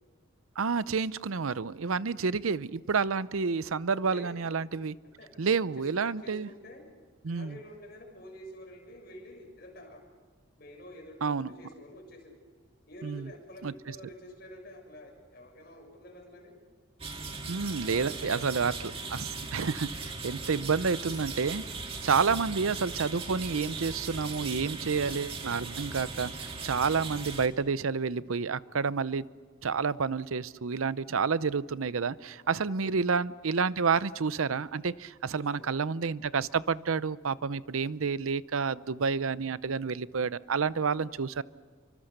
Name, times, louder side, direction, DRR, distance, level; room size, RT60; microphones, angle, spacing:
voice 1, 0.6-4.9 5.4-6.5 7.2-7.6 11.2-11.5 13.0-13.3 13.6-13.7 17.5-18.7 19.1-21.6 22.0-29.3 29.6-41.4, right 5 dB, 90° right, 17 dB, 0.7 m, -29 dB
voice 2, 5.2-6.8 7.3-10.0 10.6-12.4 12.9-16.5 17.6-18.7 20.2-20.8 32.6-32.9 35.3-35.7, equal, 50° left, 2 dB, 6.8 m, -49 dB
sound 1, 17.0-27.5, right 4 dB, 25° right, 2.1 m, -39 dB
28.5 x 24.5 x 6.7 m, 1.5 s
head